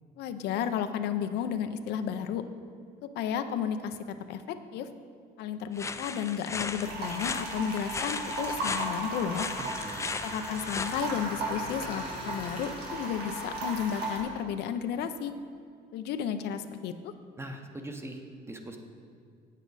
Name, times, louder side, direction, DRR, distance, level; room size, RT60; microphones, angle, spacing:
voice 1, 0.2-2.4 3.0-4.9 5.4-9.5 10.2-15.3 15.9-17.1, left 8 dB, 80° left, 9 dB, 0.5 m, -33 dB
sound 1, 5.8-11.0, left 4 dB, 15° left, 0.3 m, -37 dB
sound 2, 6.8-14.2, right 2 dB, 75° right, 1.7 m, -36 dB
voice 2, 9.6-10.1 17.4-18.8, right 1 dB, 15° right, 4 dB, 0.8 m, -42 dB
sound 3, 9.8-14.8, left 4 dB, 55° left, 0.8 m, -47 dB
8.2 x 8.2 x 4.0 m, 2.2 s
cardioid pair, 110°, 17 cm